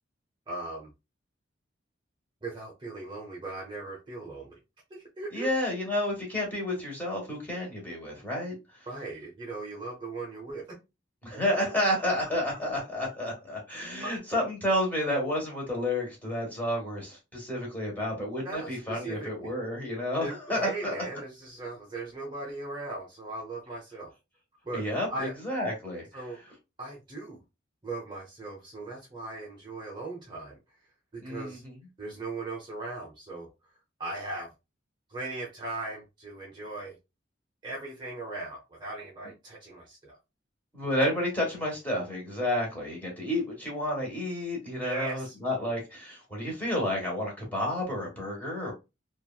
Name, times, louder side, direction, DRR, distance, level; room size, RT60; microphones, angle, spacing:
voice 1, 0.5-0.9 2.4-4.6 4.9-5.5 8.9-10.8 14.0-14.2 18.4-19.5 20.2-24.1 24.6-25.4 26.1-26.4 26.8-27.4 27.8-30.6 31.1-31.6 32.0-33.5 34.0-34.5 35.1-37.0 37.6-40.2 44.8-45.3, right 2 dB, 25° right, 0.6 m, -38 dB
voice 2, 5.3-8.5 11.2-21.0 24.7-26.2 31.2-31.7 40.7-48.7, left 1 dB, 10° left, 1.2 m, -30 dB
3.0 x 2.3 x 2.2 m
head